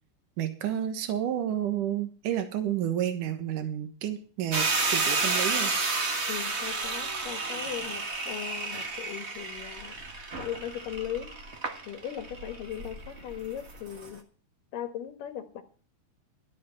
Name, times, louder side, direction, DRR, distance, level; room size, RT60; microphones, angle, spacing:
voice 1, 0.4-5.7, right 10 dB, 80° right, 8 dB, 2.9 m, -30 dB
sound 1, 4.5-14.1, right 3 dB, 50° right, 0.7 m, -31 dB
voice 2, 6.3-10.0 10.3-11.4 11.9-14.2 14.7-15.6, left 10 dB, 90° left, 7 dB, 3.0 m, -38 dB
12.0 x 8.5 x 7.4 m, 0.39 s
omnidirectional pair, 3.7 m